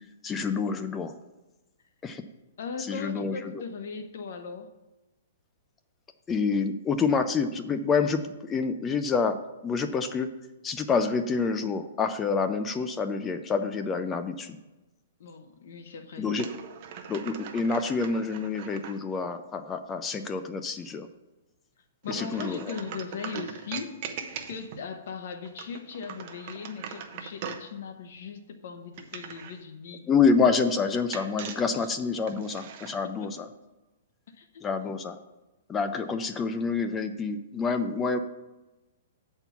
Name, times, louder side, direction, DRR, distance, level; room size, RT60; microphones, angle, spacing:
voice 1, 0.2-1.1 2.0-2.2 2.9-3.4 6.3-9.4 9.6-10.3 10.6-14.6 16.2-16.5 17.1-21.1 22.1-22.7 30.1-33.5 34.6-35.2 35.7-38.2, left 5 dB, 10° left, 9 dB, 0.3 m, -27 dB
voice 2, 2.6-4.7 15.2-16.3 22.0-24.1 24.5-30.1 33.0-33.3 34.3-34.6, left 5 dB, 55° left, 7 dB, 0.7 m, -39 dB
sound 1, 16.3-19.0 22.0-24.8 25.4-27.7 28.9-29.6 31.1-32.9, right 7 dB, 35° right, 0.7 m, -40 dB
8.0 x 4.4 x 7.0 m, 1.0 s
hypercardioid pair, 175°, 0 cm